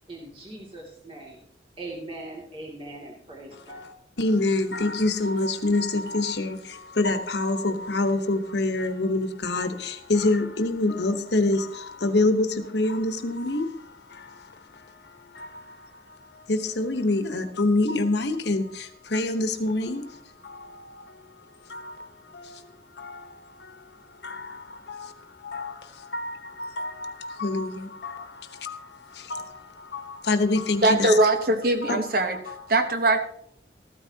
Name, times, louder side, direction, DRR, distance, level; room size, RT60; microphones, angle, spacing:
voice 1, 0.1-1.4 1.8-4.0, right 2 dB, 30° right, -2 dB, 2.3 m, -40 dB
voice 2, 4.2-22.6 22.9-23.8 24.1-29.4 29.9-31.2 31.8-32.1 32.5-32.6, left 2 dB, 75° left, 8 dB, 1.1 m, -27 dB
voice 3, 30.8-32.4 32.7-33.2, right 2 dB, 55° right, 6 dB, 1.2 m, -21 dB
14.0 x 13.0 x 2.8 m, 0.68 s
head